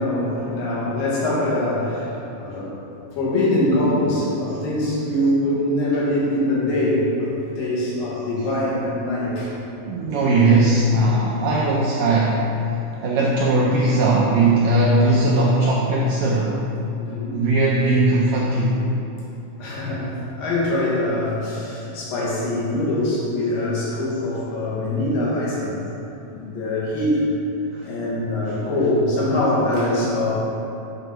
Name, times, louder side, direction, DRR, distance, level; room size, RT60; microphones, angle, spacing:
voice 1, 0.0-2.7 3.1-9.5 16.9-17.4 19.6-25.8 26.3-27.2 27.9-30.4, left 1 dB, 85° left, -7 dB, 3.3 m, -23 dB
voice 2, 9.9-16.6 17.3-18.8 27.7-27.9 28.5-28.6, right 2 dB, 90° right, -3 dB, 1.6 m, -19 dB
8.3 x 3.9 x 4.6 m, 2.9 s
omnidirectional pair, 3.9 m